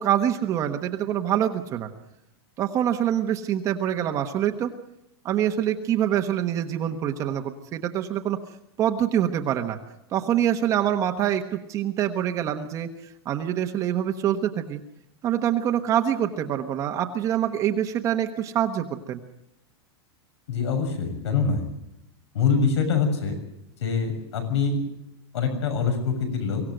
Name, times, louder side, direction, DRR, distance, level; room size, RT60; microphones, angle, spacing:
voice 1, 0.0-1.9 2.6-4.7 5.2-8.4 8.8-9.8 10.1-12.9 13.2-14.8 15.2-19.2, right 10 dB, 25° right, 5 dB, 1.1 m, -25 dB
voice 2, 20.5-21.6 22.3-23.3 23.8-24.8 25.3-26.6, left 5 dB, 85° left, 5 dB, 6.8 m, -24 dB
24.0 x 16.0 x 7.9 m, 0.83 s
supercardioid pair, 170°, 14 cm